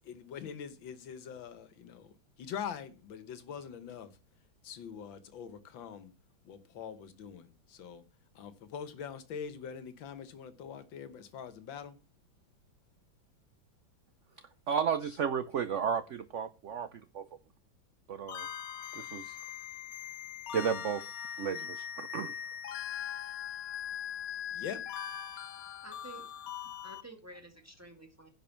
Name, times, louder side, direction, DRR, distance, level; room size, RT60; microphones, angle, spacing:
voice 1, 0.1-1.9 2.4-4.1 4.7-6.1 6.5-7.4 7.8-8.0 8.4-11.9 24.6-24.8, left 7 dB, 80° left, 1.9 m, -43 dB
voice 2, 14.7-17.3 18.1-18.5 18.9-19.4 20.5-21.1 21.4-22.4, right 7 dB, 70° right, 0.7 m, -33 dB
sound 1, 18.3-27.0, left 9 dB, 60° left, 1.0 m, -41 dB
voice 3, 25.8-26.3 26.8-28.3, right 2 dB, 10° right, 1.8 m, -50 dB
10.5 x 5.3 x 7.1 m
omnidirectional pair, 2.1 m